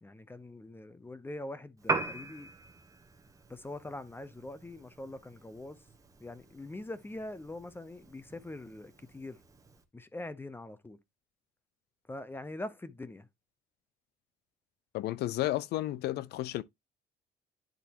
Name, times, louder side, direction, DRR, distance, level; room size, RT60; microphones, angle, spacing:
voice 1, 0.0-2.5 3.5-5.8 6.2-9.4 9.9-11.0 12.1-13.3, left 2 dB, 10° left, 0.7 m, -43 dB
Piano, 1.8-9.8, right 3 dB, 20° right, 1.2 m, -41 dB
voice 2, 14.9-16.6, left 15 dB, 75° left, 0.5 m, -32 dB
10.5 x 4.0 x 2.9 m
cardioid pair, 110°, 17 cm